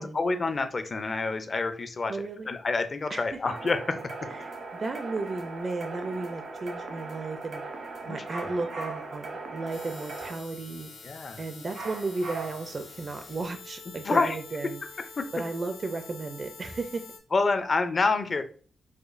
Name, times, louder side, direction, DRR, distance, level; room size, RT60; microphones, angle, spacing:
voice 1, 0.0-2.1 2.5-4.0 8.1-8.2 11.0-11.4 14.0-14.4 15.2-15.3 17.3-18.4, left 3 dB, 40° left, 9 dB, 0.5 m, -27 dB
voice 2, 2.1-2.5 3.1-3.3 4.4-7.6 8.0-10.9 11.4-14.8 15.3-17.0, right 3 dB, 40° right, 6 dB, 0.4 m, -34 dB
sound 1, 3.4-10.3, right 3 dB, 70° right, 0.8 m, -39 dB
sound 2, 8.3-9.3 11.7-12.8, right 3 dB, 85° right, 1.4 m, -39 dB
sound 3, 9.7-17.2, left 4 dB, 85° left, 0.7 m, -47 dB
4.9 x 2.2 x 2.5 m, 0.41 s
cardioid pair, 105°, 0 cm